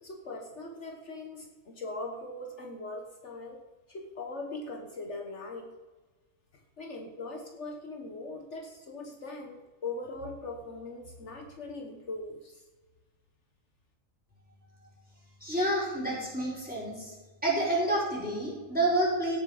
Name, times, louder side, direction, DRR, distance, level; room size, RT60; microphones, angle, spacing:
voice 1, 0.0-3.6 3.9-5.7 6.8-12.6, left 2 dB, 65° left, 2 dB, 1.6 m, -40 dB
voice 2, 15.4-17.1 17.4-19.4, right 1 dB, 5° right, -5 dB, 4.7 m, -29 dB
16.5 x 7.5 x 5.0 m, 1.3 s
omnidirectional pair, 1.3 m